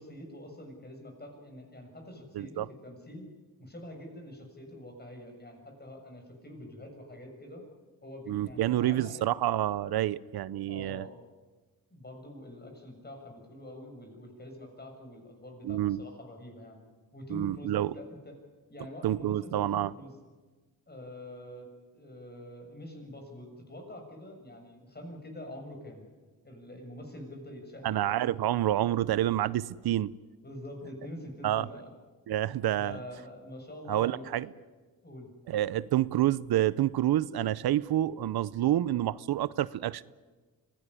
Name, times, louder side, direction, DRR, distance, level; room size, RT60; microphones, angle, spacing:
voice 1, 0.0-3.3 3.6-7.6 8.0-9.4 10.7-11.2 11.9-18.4 18.7-20.1 20.9-26.1 26.4-28.0 30.4-31.9 32.7-34.5 35.0-35.3, left 1 dB, 25° left, 7.1 m, -45 dB
voice 2, 2.3-2.7 8.3-11.1 15.6-16.0 17.3-17.9 19.0-19.9 27.8-30.1 31.4-31.7 32.3-33.0 33.9-34.5 35.5-40.0, right 13 dB, 80° right, 0.7 m, -28 dB
25.0 x 17.0 x 9.9 m
cardioid pair, 95°, 37 cm